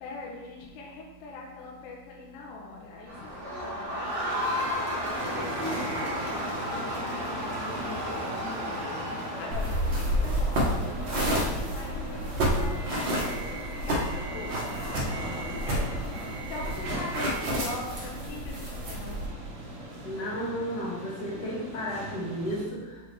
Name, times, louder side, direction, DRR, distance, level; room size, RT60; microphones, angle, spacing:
voice 1, 0.0-3.1 3.6-4.1 4.9-5.5 5.9-7.2 7.5-9.0 9.4-9.9 10.2-13.4 13.9-14.0 14.3-15.0 15.7-15.8 16.5-18.6 18.8-19.2, left 3 dB, 80° left, -1 dB, 2.4 m, -41 dB
Crowd, 3.1-9.9, equal, 45° right, 1.3 m, -33 dB
sound 1, 5.1-22.6, right 1 dB, 60° right, 2.2 m, -38 dB
sound 2, 9.5-19.3, equal, 80° right, 1.0 m, -30 dB
voice 2, 20.0-23.0, equal, 50° left, -5 dB, 1.2 m, -33 dB
6.8 x 5.2 x 3.3 m, 1.2 s
omnidirectional pair, 4.1 m